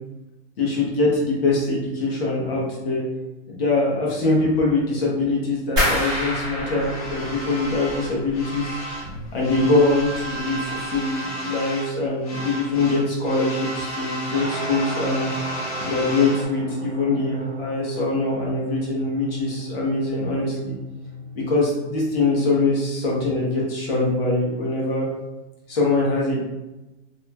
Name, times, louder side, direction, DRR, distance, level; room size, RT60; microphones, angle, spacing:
voice 1, 0.6-3.1 3.5-8.8 9.0-15.3 15.8-20.8 21.3-25.1 25.7-26.4, left 2 dB, 50° left, -3 dB, 1.1 m, -23 dB
sound 1, 5.8-8.6 8.9-9.6 10.0-10.4 10.8-11.0, left 1 dB, 10° right, 1.0 m, -27 dB
sound 2, 6.8-9.1 9.4-12.0 12.2-16.4, equal, 30° left, 0.5 m, -33 dB
Guitar, 14.3-23.3, left 1 dB, 65° right, 0.7 m, -36 dB
3.0 x 2.8 x 2.3 m, 1.0 s
supercardioid pair, 175°, 37 cm